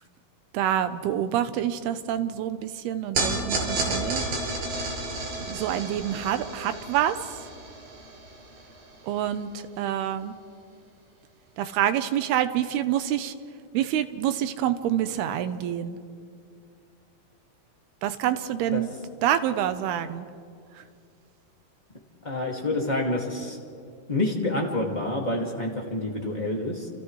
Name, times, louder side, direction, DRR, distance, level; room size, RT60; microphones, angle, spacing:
voice 1, 0.5-4.2 5.5-7.5 9.0-10.4 11.6-13.3 13.7-16.0 18.0-18.9 19.2-20.3 20.7-20.8, right 11 dB, 85° right, 10 dB, 2.9 m, -27 dB
sound 1, 3.2-9.6, right 2 dB, 65° right, 6.5 m, -32 dB
voice 2, 22.2-23.6 24.1-26.9, left 2 dB, 20° left, -1 dB, 1.2 m, -28 dB
29.5 x 29.0 x 3.2 m, 2.3 s
omnidirectional pair, 4.5 m